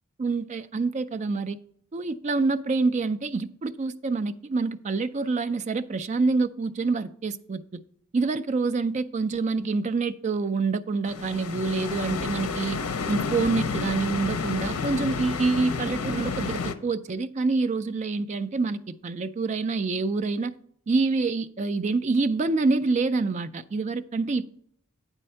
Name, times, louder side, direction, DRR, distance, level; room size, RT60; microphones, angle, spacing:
voice 1, 0.2-1.6 1.9-7.8 8.1-12.8 13.1-20.5 20.9-24.5, right 3 dB, 30° right, 11 dB, 0.3 m, -26 dB
sound 1, 11.1-16.7, left 5 dB, 80° left, 0.6 m, -30 dB
9.0 x 4.2 x 5.5 m, 0.65 s
head